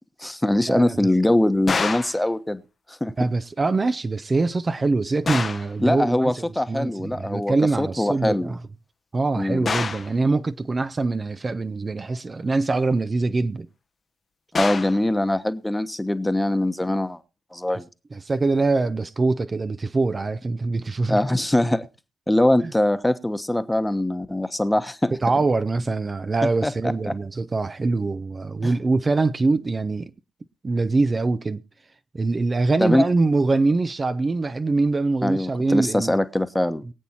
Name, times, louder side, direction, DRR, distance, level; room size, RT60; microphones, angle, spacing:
voice 1, 0.2-2.6 2.9-3.1 5.8-8.5 9.4-9.7 14.5-17.2 17.5-17.9 21.1-21.9 22.3-25.2 26.4-27.1 28.6-28.7 32.8-33.1 35.2-36.8, left 1 dB, 10° left, 1.2 m, -22 dB
sound 1, 1.7-2.2 5.3-5.7 9.7-10.1 14.5-15.0, left 5 dB, 45° left, 0.9 m, -26 dB
voice 2, 3.2-8.6 9.1-13.7 18.1-21.2 25.2-30.1 30.6-31.6 32.1-36.2 36.9-37.0, right 3 dB, 35° right, 0.7 m, -23 dB
23.0 x 8.3 x 2.9 m
hypercardioid pair, 40°, 0 cm